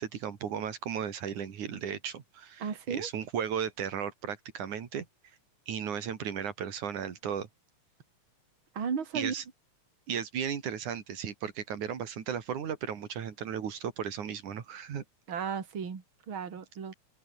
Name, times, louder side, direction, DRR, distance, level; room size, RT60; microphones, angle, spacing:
voice 1, 0.0-5.1 5.7-7.5 9.1-9.4 10.1-15.0, right 8 dB, 85° right, 3.9 m, -35 dB
voice 2, 2.6-3.1 8.7-9.3 15.3-16.9, right 6 dB, 45° right, 3.5 m, -34 dB
omnidirectional pair, 3.4 m